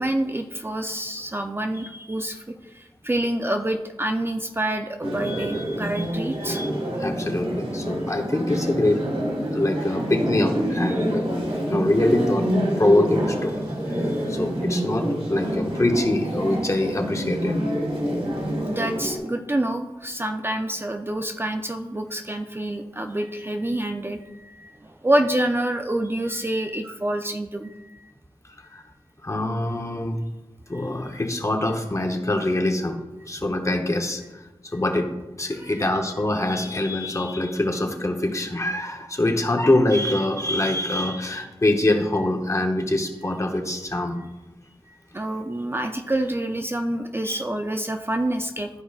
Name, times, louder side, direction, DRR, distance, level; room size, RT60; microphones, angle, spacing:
voice 1, 0.0-6.6 14.1-14.2 18.6-28.1 30.7-30.9 35.6-35.8 44.9-48.7, right 1 dB, 25° right, 5 dB, 0.4 m, -27 dB
sound 1, 5.0-19.2, equal, 85° right, 1.9 m, -27 dB
voice 2, 5.2-6.1 6.4-6.7 7.0-9.1 9.5-11.3 11.7-12.5 12.8-13.6 14.3-17.6 28.6-28.8 29.2-30.2 30.7-33.0 33.3-35.1 35.4-44.2 47.2-47.4, left 1 dB, 30° left, 4 dB, 0.9 m, -24 dB
13.0 x 4.9 x 2.4 m, 1.1 s
wide cardioid pair, 85°, 10 cm